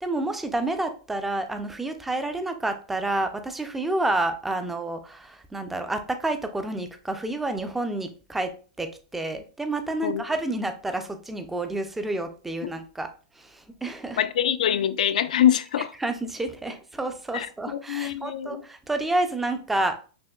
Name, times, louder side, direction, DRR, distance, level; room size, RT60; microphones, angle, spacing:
voice 1, 0.0-13.1 13.4-14.2 16.0-20.0, right 2 dB, 5° right, 0.3 m, -29 dB
voice 2, 14.2-15.9 17.3-18.6, left 10 dB, 75° left, 0.3 m, -24 dB
5.9 x 2.8 x 2.2 m
supercardioid pair, 165°, 4 cm